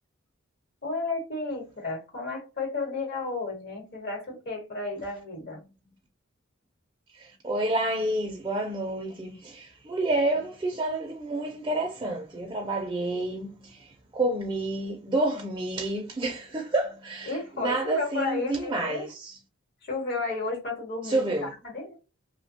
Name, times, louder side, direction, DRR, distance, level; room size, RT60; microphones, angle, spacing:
voice 1, 0.8-5.6 17.3-19.1 19.8-21.9, left 3 dB, 50° left, 1.1 m, -32 dB
voice 2, 7.4-13.8 14.1-17.3 17.6-19.1 21.1-21.5, right 2 dB, 20° right, 0.4 m, -29 dB
2.7 x 2.1 x 2.7 m
head